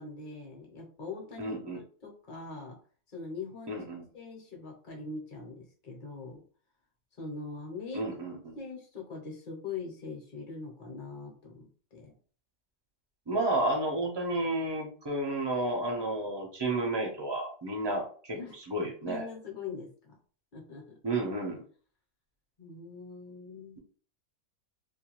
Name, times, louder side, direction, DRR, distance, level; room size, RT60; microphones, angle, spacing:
voice 1, 0.0-2.8 3.1-3.8 4.1-6.4 7.2-8.0 8.3-12.1 18.3-18.6 19.0-20.1 20.5-21.0 22.6-23.8, left 4 dB, 45° left, -1 dB, 0.8 m, -42 dB
voice 2, 1.4-1.8 3.7-4.1 7.9-8.6 13.3-19.2 21.0-21.6, right 2 dB, 30° right, 0 dB, 0.4 m, -31 dB
2.5 x 2.3 x 2.9 m, 0.42 s
omnidirectional pair, 1.5 m